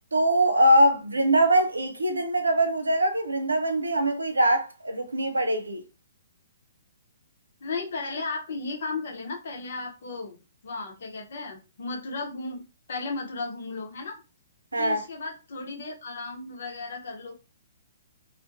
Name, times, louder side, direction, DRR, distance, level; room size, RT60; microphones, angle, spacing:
voice 1, 0.1-5.8 14.7-15.0, right 1 dB, 85° right, 0.5 m, -22 dB
voice 2, 7.6-10.4 10.6-12.6 12.9-14.2 14.8-17.4, left 3 dB, 60° left, 0.8 m, -35 dB
2.3 x 2.1 x 2.6 m
figure-of-eight pair, 125°, 0 cm